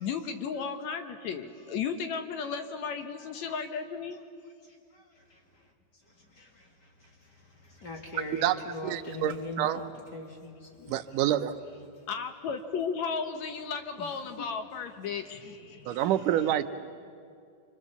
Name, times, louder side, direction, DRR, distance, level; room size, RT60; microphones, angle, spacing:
voice 1, 0.0-4.2 12.1-16.0, left 6 dB, 65° left, 2.0 m, -34 dB
voice 2, 6.3-6.7 7.0-7.1 7.4-11.0 14.0-14.1, left 2 dB, 35° left, 2.6 m, -41 dB
voice 3, 8.4-9.8 10.9-11.6 15.9-16.6, right 11 dB, 75° right, 2.2 m, -27 dB
27.5 x 25.0 x 7.1 m
omnidirectional pair, 3.9 m